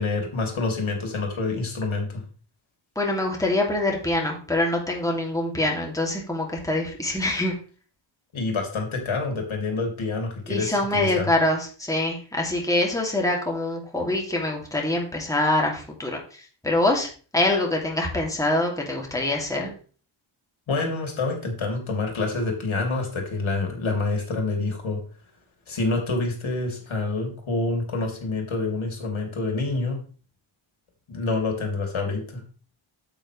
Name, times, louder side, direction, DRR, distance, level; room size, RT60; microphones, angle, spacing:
voice 1, 0.0-2.2 8.3-11.3 20.7-25.0 25.7-30.0 31.1-32.4, left 3 dB, 70° left, 2 dB, 2.8 m, -27 dB
voice 2, 3.0-7.5 10.5-19.7, left 1 dB, 5° left, -1 dB, 2.5 m, -25 dB
8.9 x 8.0 x 3.2 m, 0.39 s
cardioid pair, 80°, 50 cm